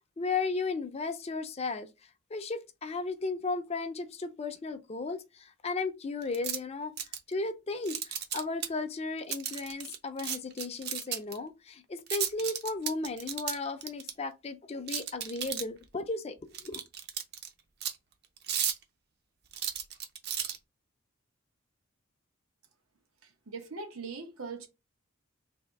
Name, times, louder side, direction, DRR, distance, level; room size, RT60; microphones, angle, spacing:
voice 1, 0.2-1.9 2.3-6.9 7.3-16.8, left 3 dB, 30° left, 0.4 m, -35 dB
sound 1, 6.2-6.6 7.0-7.3 7.9-8.7 9.3-11.4 12.1-14.1 14.9-15.8 16.5-17.5 17.8-17.9 18.4-18.8 19.5-20.6, right 9 dB, 50° right, 0.6 m, -34 dB
voice 2, 23.2-24.7, right 4 dB, 90° right, 0.9 m, -41 dB
3.5 x 2.5 x 4.5 m
head